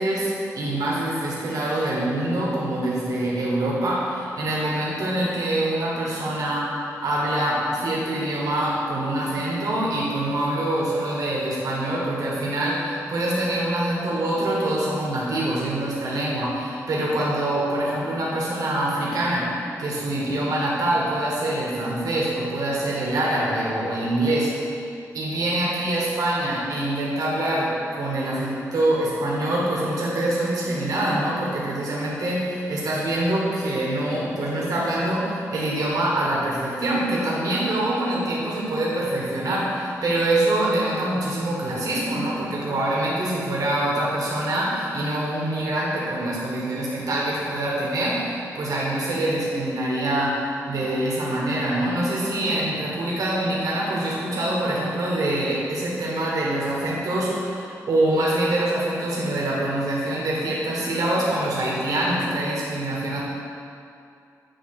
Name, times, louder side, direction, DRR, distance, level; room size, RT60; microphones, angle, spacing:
voice 1, 0.0-24.8 25.1-63.2, right 1 dB, 80° right, -5 dB, 1.3 m, -25 dB
8.3 x 2.9 x 5.9 m, 2.5 s
cardioid pair, 85°, 6 cm